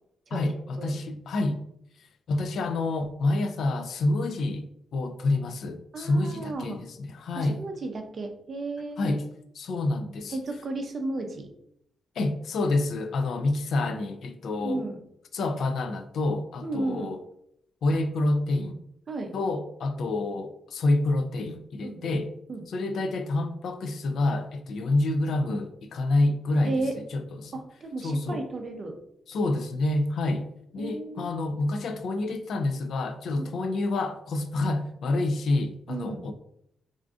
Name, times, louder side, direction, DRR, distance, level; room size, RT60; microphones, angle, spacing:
voice 1, 0.3-1.6 2.3-7.6 9.0-9.3 9.6-10.4 12.2-14.8 15.3-17.2 17.8-18.8 19.3-22.3 22.7-27.5 28.0-28.4 29.3-30.5 30.7-36.3, left 2 dB, 65° left, 0.3 m, -28 dB
voice 2, 5.9-6.8 7.4-9.2 10.3-11.5 14.5-15.0 16.6-17.1 19.1-19.3 21.8-22.2 22.5-22.6 26.7-27.0 27.5-29.0 30.8-31.3 33.4-33.5 35.9-36.3, right 2 dB, 40° right, 0.4 m, -33 dB
3.5 x 2.4 x 2.4 m
wide cardioid pair, 150°, 0 cm